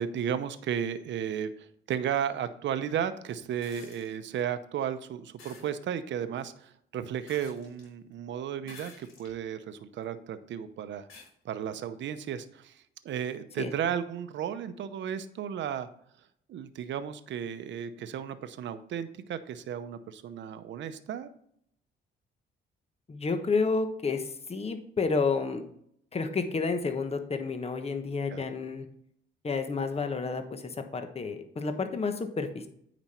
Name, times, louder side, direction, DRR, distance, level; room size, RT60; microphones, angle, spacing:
voice 1, 0.0-11.1 11.4-15.9 16.5-21.3 28.3-28.4, right 9 dB, 70° right, 11 dB, 0.8 m, -34 dB
sound 1, 3.6-4.1 5.4-5.7 7.3-7.9 8.6-9.4 10.0-10.1 11.1-11.3 12.8-12.9, left 4 dB, 85° left, 3.7 m, -50 dB
voice 2, 23.1-25.6 26.1-28.9 29.4-32.7, left 4 dB, 30° left, 7 dB, 1.2 m, -30 dB
9.1 x 5.2 x 4.3 m, 0.68 s
cardioid pair, 90°, 20 cm